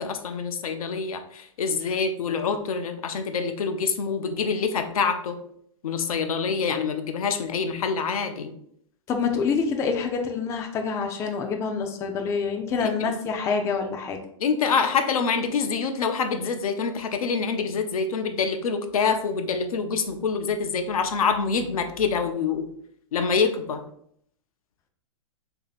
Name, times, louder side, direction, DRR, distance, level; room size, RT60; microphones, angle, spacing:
voice 1, 0.0-5.4 5.8-8.5 12.8-13.1 14.4-22.7 23.1-23.8, left 5 dB, 85° left, 6 dB, 0.6 m, -26 dB
voice 2, 9.1-14.2, left 5 dB, 15° left, 3 dB, 0.3 m, -26 dB
3.0 x 2.7 x 4.0 m, 0.69 s
hypercardioid pair, 135°, 18 cm